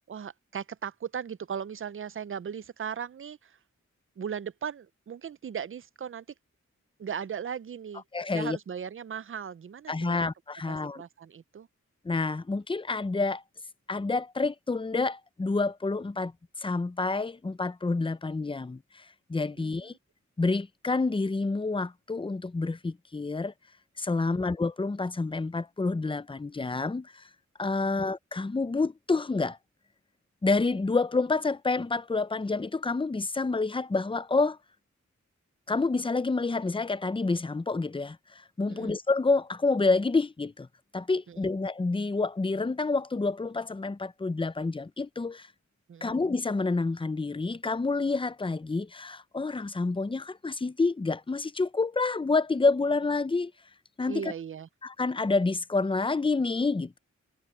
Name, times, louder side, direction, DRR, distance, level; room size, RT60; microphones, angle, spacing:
voice 1, 0.1-3.6 4.2-6.3 7.0-8.0 8.3-10.3 10.7-11.7 19.6-20.0 24.2-24.5 38.7-39.0 41.3-41.4 45.9-46.2 54.1-54.7, right 7 dB, 45° right, 0.5 m, -38 dB
voice 2, 8.1-8.6 9.9-11.0 12.0-13.4 13.9-16.3 16.6-19.9 20.4-23.5 24.0-27.2 27.6-29.6 30.4-34.6 35.7-40.7 40.9-45.5 46.0-53.5 54.0-54.3 54.8-57.0, left 3 dB, 20° left, 0.5 m, -28 dB
wide cardioid pair, 110°, 29 cm